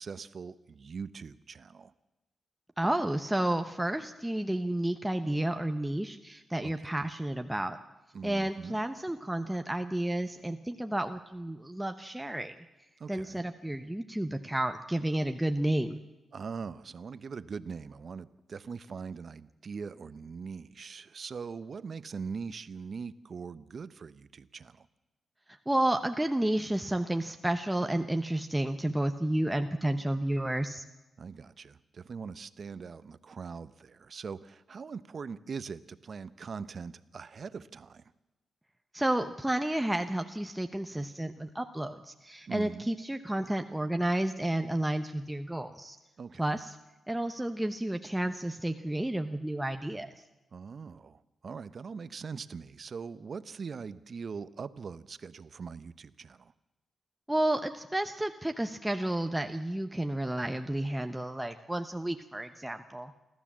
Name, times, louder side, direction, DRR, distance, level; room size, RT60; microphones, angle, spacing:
voice 1, 0.0-1.9 6.6-7.1 8.1-8.8 13.0-13.4 16.3-24.9 31.2-38.0 42.5-42.9 46.2-46.4 50.5-56.5, right 5 dB, 55° right, 15 dB, 0.8 m, -42 dB
voice 2, 2.8-7.8 8.2-12.5 13.1-16.0 25.7-30.8 38.9-46.0 46.4-46.8 47.1-50.2 57.3-63.1, right 1 dB, 10° right, 6 dB, 0.9 m, -31 dB
29.0 x 12.5 x 7.4 m, 1.1 s
cardioid pair, 65°, 0 cm